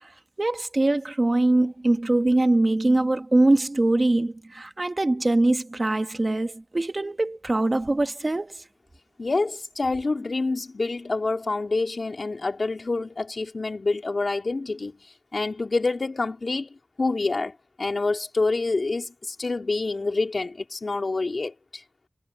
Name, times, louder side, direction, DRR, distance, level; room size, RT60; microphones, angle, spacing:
voice 1, 0.4-8.6, right 2 dB, 40° right, 1.7 m, -22 dB
voice 2, 9.2-15.0 15.3-21.8, left 3 dB, 70° left, 2.7 m, -27 dB
wide cardioid pair, 70°, 0 cm